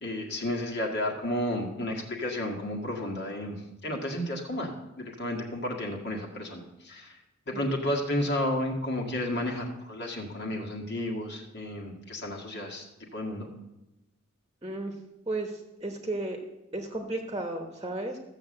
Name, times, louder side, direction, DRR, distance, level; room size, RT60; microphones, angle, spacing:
voice 1, 0.0-7.2 7.5-12.8 13.1-13.5, left 1 dB, 55° left, 0 dB, 1.8 m, -32 dB
voice 2, 14.6-14.9 15.3-16.4 16.7-18.2, right 2 dB, 20° right, 4 dB, 1.1 m, -34 dB
14.0 x 7.0 x 7.6 m, 0.97 s
head